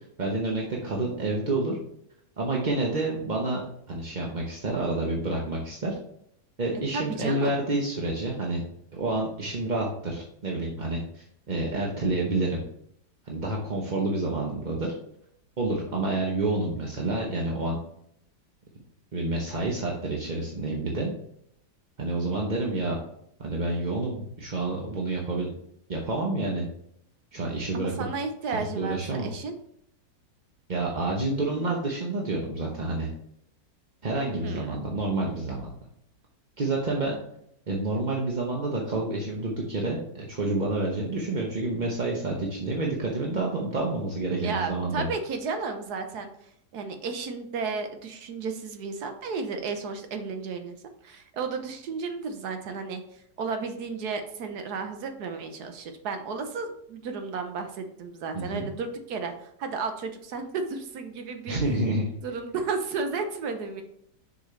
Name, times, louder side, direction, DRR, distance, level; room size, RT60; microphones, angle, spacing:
voice 1, 0.2-1.8 2.4-3.6 3.9-6.0 6.6-8.6 8.9-12.6 13.3-14.9 15.6-17.8 19.1-21.1 22.0-23.0 23.4-25.5 25.9-26.7 27.3-28.1 28.5-29.3 30.7-33.1 34.0-35.7 36.6-37.1 37.7-45.1 58.3-58.7 61.5-62.1, right 2 dB, 35° right, -2 dB, 0.8 m, -28 dB
voice 2, 6.9-7.5 27.7-29.5 34.4-34.8 44.4-46.3 46.7-50.8 51.0-53.0 53.4-61.6 62.2-63.8, right 4 dB, 70° right, 6 dB, 1.4 m, -33 dB
6.6 x 5.3 x 3.2 m, 0.71 s
omnidirectional pair, 1.9 m